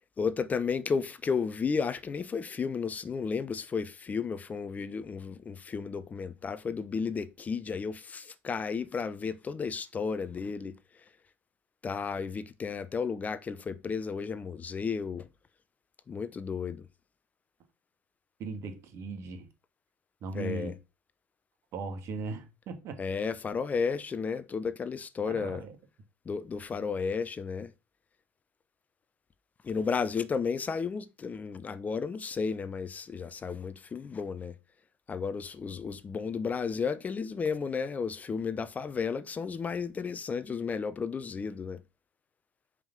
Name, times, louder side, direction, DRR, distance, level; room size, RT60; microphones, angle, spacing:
voice 1, 0.2-10.7 11.8-15.3 16.1-16.9 20.3-20.7 23.0-25.6 26.3-27.7 29.6-34.6 35.1-41.8, left 5 dB, 25° left, 0.7 m, -33 dB
voice 2, 18.4-19.5 20.2-20.8 21.7-23.0 25.3-25.7, right 4 dB, 50° right, 1.8 m, -38 dB
5.3 x 5.0 x 5.9 m
hypercardioid pair, 85°, 6 cm